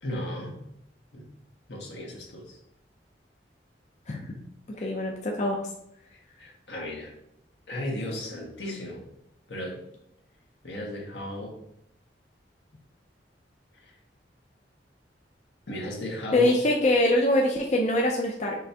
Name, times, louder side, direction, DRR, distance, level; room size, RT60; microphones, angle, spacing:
voice 1, 0.0-0.6 1.1-1.3 1.7-2.6 4.8-4.9 6.4-7.1 7.7-9.0 9.5-9.8 10.6-11.5 13.8-13.9 15.7-16.5, left 1 dB, 75° left, -2 dB, 1.4 m, -35 dB
voice 2, 4.8-5.6 16.3-18.6, left 1 dB, 40° left, 0 dB, 0.5 m, -23 dB
5.4 x 3.3 x 2.8 m, 0.77 s
head